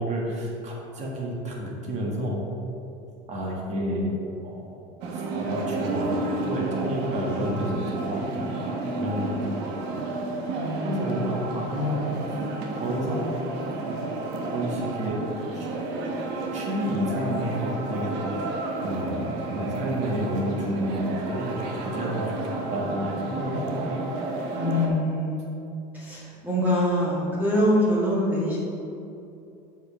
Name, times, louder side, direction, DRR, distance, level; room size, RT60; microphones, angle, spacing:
voice 1, 0.0-2.4 3.3-4.1 4.4-4.7 5.1-9.6 9.9-10.0 10.8-12.1 12.8-13.3 13.8-14.0 14.4-15.2 15.5-15.7 16.2-18.4 18.8-23.9, equal, 35° right, -2 dB, 1.7 m, -30 dB
sound 1, 5.0-24.9, right 2 dB, 65° right, 1.1 m, -31 dB
voice 2, 10.5-11.1 24.5-25.6 25.9-28.6, left 1 dB, 10° right, -7 dB, 1.6 m, -24 dB
6.5 x 5.3 x 4.9 m, 2.8 s
cardioid pair, 135°, 19 cm